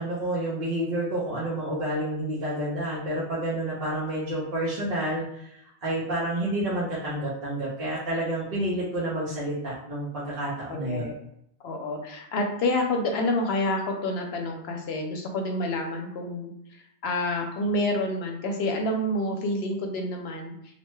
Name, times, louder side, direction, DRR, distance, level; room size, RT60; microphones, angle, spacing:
voice 1, 0.0-11.2, right 1 dB, 55° right, -9 dB, 0.9 m, -29 dB
voice 2, 10.7-11.2 11.6-20.5, left 1 dB, 70° left, 3 dB, 0.8 m, -28 dB
2.7 x 2.2 x 3.1 m, 0.75 s
omnidirectional pair, 1.2 m